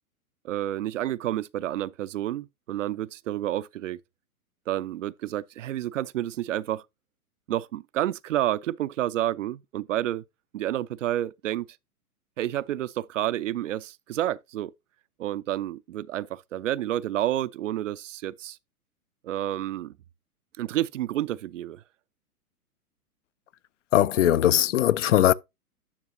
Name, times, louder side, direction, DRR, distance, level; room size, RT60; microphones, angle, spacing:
voice 1, 0.4-4.0 4.7-6.8 7.5-10.2 10.5-11.7 12.4-14.7 15.2-18.6 19.2-19.9 20.6-21.8, right 13 dB, 60° right, 0.5 m, -29 dB
voice 2, 23.9-25.3, left 12 dB, 55° left, 0.5 m, -20 dB
9.8 x 6.3 x 2.5 m
figure-of-eight pair, 115°, 45 cm